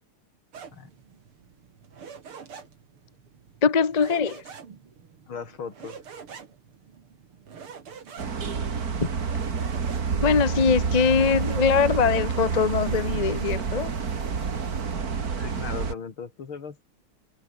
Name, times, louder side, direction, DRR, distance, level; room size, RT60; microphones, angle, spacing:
sound 1, 0.5-11.6, right 6 dB, 90° right, 3.3 m, -46 dB
voice 1, 3.6-4.4 9.0-9.1 10.1-13.9, left 6 dB, 30° left, 0.7 m, -22 dB
voice 2, 5.3-6.0 15.4-16.8, left 6 dB, 70° left, 3.5 m, -37 dB
sound 2, 8.2-15.9, right 5 dB, 45° right, 2.4 m, -28 dB
omnidirectional pair, 2.3 m